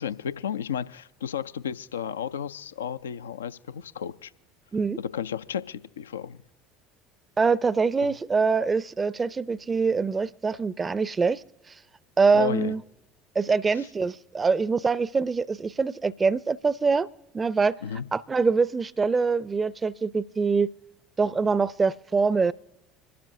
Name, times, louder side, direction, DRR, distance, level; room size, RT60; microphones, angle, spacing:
voice 1, 0.0-4.3 5.0-6.4 8.0-8.1 12.3-12.7 17.8-18.1, left 8 dB, 80° left, 0.3 m, -33 dB
voice 2, 7.4-11.4 12.2-12.8 13.4-17.1 17.3-17.8 18.1-20.7 21.2-22.5, right 4 dB, 25° right, 0.4 m, -24 dB
25.5 x 12.0 x 2.6 m
figure-of-eight pair, 65°, 0 cm